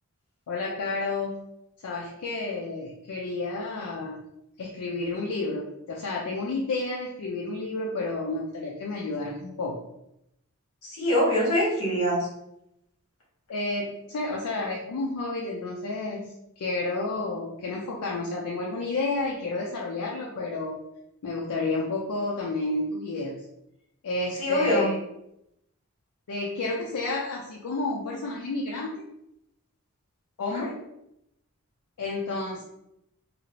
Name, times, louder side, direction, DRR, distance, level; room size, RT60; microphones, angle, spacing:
voice 1, 0.5-1.4 1.8-4.2 4.6-5.6 5.9-9.8 13.5-20.8 21.2-23.4 24.0-25.0 26.3-29.0 30.4-30.8 32.0-32.6, left 2 dB, 85° left, -2 dB, 0.4 m, -30 dB
voice 2, 10.8-12.3 24.4-24.9 30.5-30.6, equal, 70° left, -5 dB, 1.3 m, -24 dB
2.6 x 2.4 x 3.0 m, 0.82 s
head